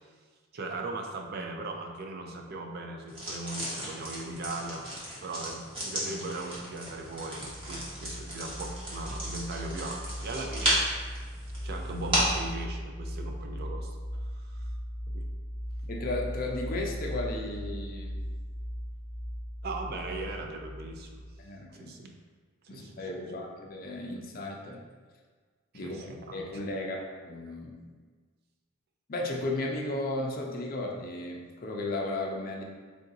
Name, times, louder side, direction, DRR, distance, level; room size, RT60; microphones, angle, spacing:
voice 1, 0.5-4.8 5.2-10.8 11.6-13.9 14.3-14.7 15.1-15.3 19.6-21.3 21.7-22.1 22.6-23.2 25.7-26.4, right 2 dB, 50° right, 3 dB, 0.4 m, -38 dB
sound 1, 3.1-12.5, right 1 dB, 25° right, 1.1 m, -34 dB
sound 2, 6.9-21.4, equal, ahead, 0.5 m, -38 dB
voice 2, 15.9-18.2 21.4-21.9 22.7-24.8 25.7-26.0 26.3-27.0 27.2-27.8 29.1-32.6, left 2 dB, 45° left, 0 dB, 0.5 m, -34 dB
3.6 x 2.5 x 3.9 m, 1.5 s
head